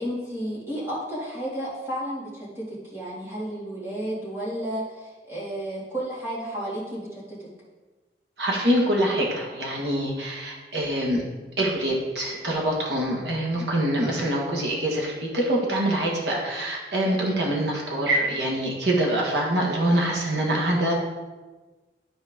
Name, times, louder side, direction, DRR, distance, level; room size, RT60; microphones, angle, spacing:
voice 1, 0.0-7.5, right 1 dB, 15° right, -8 dB, 2.4 m, -32 dB
voice 2, 8.4-11.2 11.6-20.9, right 1 dB, 75° right, -2 dB, 1.6 m, -25 dB
12.0 x 4.3 x 3.7 m, 1.3 s
head